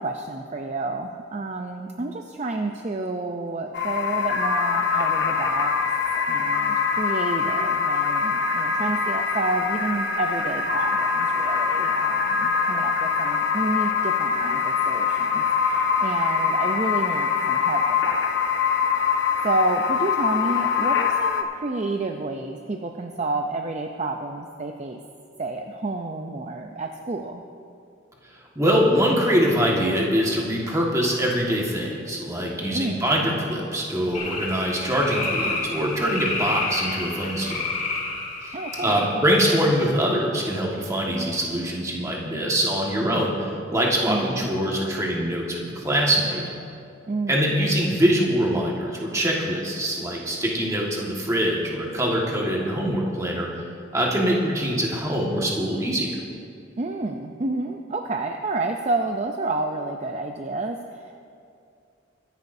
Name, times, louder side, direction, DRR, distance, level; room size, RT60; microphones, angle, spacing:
voice 1, 0.0-5.8 6.3-18.3 19.4-25.0 25.4-27.4 32.7-33.1 38.5-39.2 44.1-44.5 47.1-47.6 56.8-61.1, right 2 dB, 35° right, 4 dB, 0.5 m, -29 dB
sound 1, 3.7-21.4, left 6 dB, 65° left, 0.9 m, -23 dB
voice 2, 28.5-37.6 38.4-38.5 38.8-46.4 47.3-53.5 53.9-56.2, equal, 15° right, -2 dB, 1.6 m, -23 dB
sound 2, 34.1-39.3, left 3 dB, 40° left, 1.8 m, -30 dB
22.5 x 10.5 x 2.7 m, 2.5 s
head